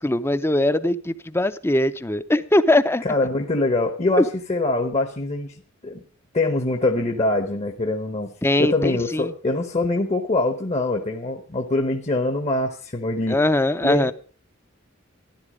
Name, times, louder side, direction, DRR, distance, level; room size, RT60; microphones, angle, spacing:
voice 1, 0.0-3.0 4.2-4.3 8.4-9.2 13.3-14.1, left 1 dB, 10° left, 13 dB, 0.6 m, -21 dB
voice 2, 3.0-5.5 5.8-6.0 6.3-8.3 8.6-13.4 13.8-14.1, left 2 dB, 35° left, 5 dB, 1.0 m, -23 dB
13.0 x 11.5 x 5.0 m, 0.40 s
head